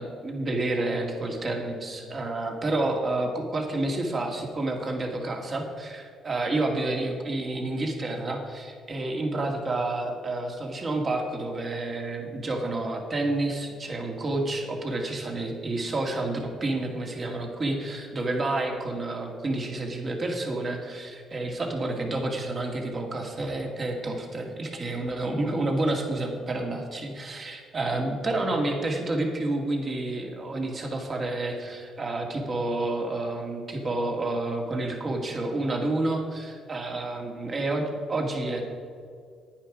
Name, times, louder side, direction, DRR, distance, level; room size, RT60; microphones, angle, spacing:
voice 1, 0.0-38.6, right 2 dB, 40° right, 1 dB, 2.2 m, -29 dB
10.0 x 9.7 x 5.0 m, 2.3 s
cardioid pair, 85°, 0 cm